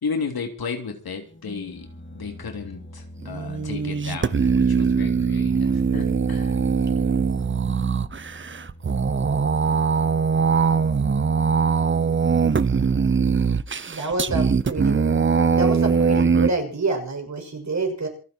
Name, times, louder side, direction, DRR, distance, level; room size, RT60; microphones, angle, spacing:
voice 1, 0.0-1.9 2.1-6.6, left 5 dB, 80° left, 5 dB, 3.2 m, -33 dB
sound 1, 1.2-10.0, left 1 dB, 30° left, 3.1 m, -43 dB
sound 2, 3.2-16.5, right 5 dB, 35° right, 0.7 m, -21 dB
voice 2, 13.9-15.2 15.6-18.1, right 3 dB, 50° right, 3 dB, 6.2 m, -27 dB
27.0 x 9.2 x 4.5 m, 0.38 s
wide cardioid pair, 85°, 36 cm